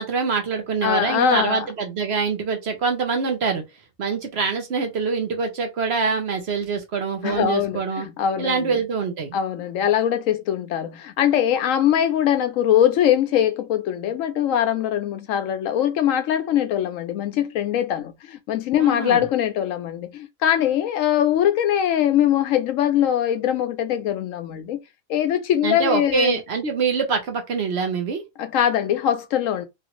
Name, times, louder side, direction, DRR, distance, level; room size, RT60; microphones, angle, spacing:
voice 1, 0.0-3.6 4.0-8.1 8.4-9.4 18.8-19.2 25.6-28.2, right 5 dB, 55° right, 0.9 m, -24 dB
voice 2, 0.8-1.6 7.2-8.8 9.3-24.8 25.1-26.4 28.4-29.7, left 10 dB, 75° left, 0.9 m, -22 dB
3.1 x 2.5 x 2.9 m
omnidirectional pair, 1.4 m